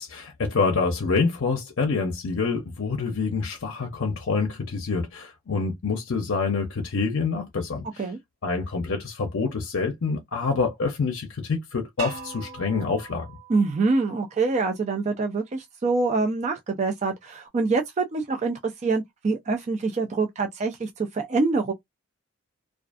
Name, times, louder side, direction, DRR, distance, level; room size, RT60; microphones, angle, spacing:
voice 1, 0.0-8.1 8.4-13.3, left 4 dB, 65° left, 0.5 m, -26 dB
sound 1, 12.0-14.9, right 4 dB, 70° right, 0.8 m, -40 dB
voice 2, 13.5-21.7, right 3 dB, 30° right, 0.3 m, -25 dB
2.4 x 2.3 x 2.4 m
head